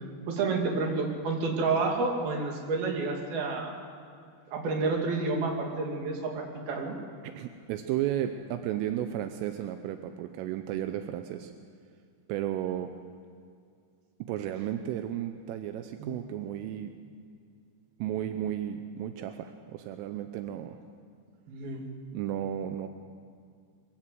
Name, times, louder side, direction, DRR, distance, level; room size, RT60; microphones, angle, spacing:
voice 1, 0.3-3.8 4.5-6.9 16.0-16.1 21.5-21.8, right 3 dB, 55° right, 1 dB, 4.0 m, -29 dB
voice 2, 7.2-11.5 12.3-12.9 14.3-16.9 18.0-20.8 22.1-22.9, right 11 dB, 85° right, 8 dB, 3.3 m, -33 dB
23.0 x 16.0 x 7.8 m, 2.3 s
omnidirectional pair, 5.7 m